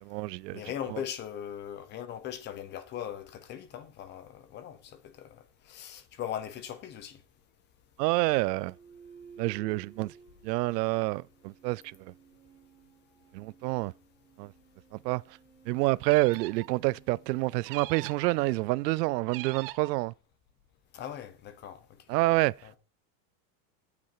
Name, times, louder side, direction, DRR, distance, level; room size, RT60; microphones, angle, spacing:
voice 1, 0.0-0.6 0.9-1.0 8.0-8.7 9.4-10.1 10.4-12.1 13.3-13.9 14.4-14.5 14.9-15.4 15.7-20.1 22.1-22.5, right 20 dB, 85° right, 0.6 m, -28 dB
voice 2, 0.5-5.4 5.7-7.2 20.9-21.8 22.6-22.7, left 10 dB, 20° left, 0.9 m, -39 dB
sound 1, 8.6-18.3, right 6 dB, 10° right, 1.9 m, -56 dB
sound 2, 16.0-16.7 17.7-18.3 19.3-19.9, right 17 dB, 40° right, 0.4 m, -43 dB
12.0 x 8.4 x 4.8 m
supercardioid pair, 180°, 48 cm